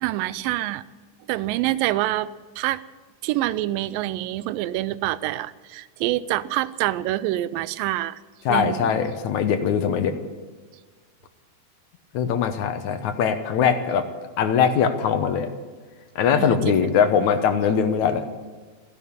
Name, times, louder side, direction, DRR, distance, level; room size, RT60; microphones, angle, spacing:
voice 1, 0.0-0.8 1.3-2.3 2.6-2.8 3.2-8.2 8.5-8.9 16.3-16.9, right 15 dB, 90° right, 17 dB, 2.3 m, -26 dB
voice 2, 8.5-10.2 12.1-14.1 14.4-15.5 16.2-18.2, left 7 dB, 65° left, 8 dB, 2.2 m, -21 dB
15.0 x 11.0 x 8.6 m, 1.4 s
omnidirectional pair, 3.9 m